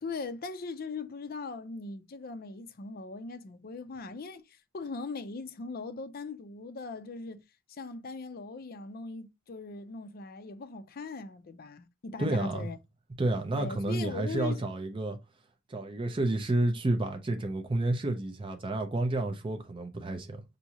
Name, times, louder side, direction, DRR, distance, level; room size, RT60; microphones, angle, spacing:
voice 1, 0.0-12.8 13.5-14.6, left 3 dB, 45° left, 0.5 m, -40 dB
voice 2, 12.2-12.7 13.2-15.2 15.7-20.4, right 2 dB, 25° right, 0.5 m, -30 dB
5.8 x 2.7 x 2.8 m
head